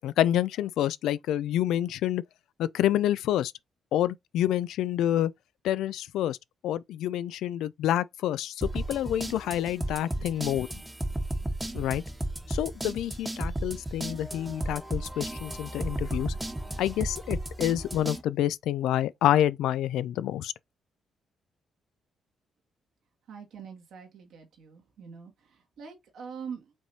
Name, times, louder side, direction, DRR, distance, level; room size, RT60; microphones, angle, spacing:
voice 1, 0.0-2.2 2.6-3.5 3.9-5.3 5.6-6.4 6.6-10.7 11.7-12.0 12.5-16.3 16.8-20.5, left 12 dB, 85° left, 0.3 m, -28 dB
sound 1, 8.6-18.2, right 1 dB, 15° right, 1.1 m, -34 dB
voice 2, 23.3-26.7, right 6 dB, 75° right, 1.8 m, -44 dB
5.2 x 3.3 x 2.7 m
cardioid pair, 80°, 0 cm